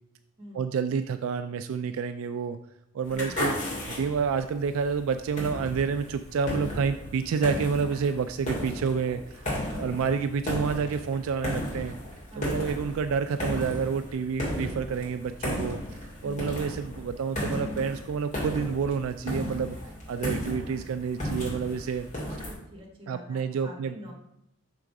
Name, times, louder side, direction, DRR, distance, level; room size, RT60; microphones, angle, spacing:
voice 1, 0.5-2.6 2.9-3.6 3.9-9.4 9.8-12.0 12.4-15.8 16.2-19.8 20.1-22.1 23.1-23.9, right 6 dB, 70° right, 9 dB, 0.3 m, -29 dB
sound 1, 3.0-22.5, left 1 dB, 35° left, 2.1 m, -35 dB
voice 2, 9.5-9.9 12.3-12.5 16.2-16.5 22.1-24.1, equal, 25° right, -1 dB, 1.4 m, -46 dB
6.0 x 3.8 x 4.7 m, 0.80 s
head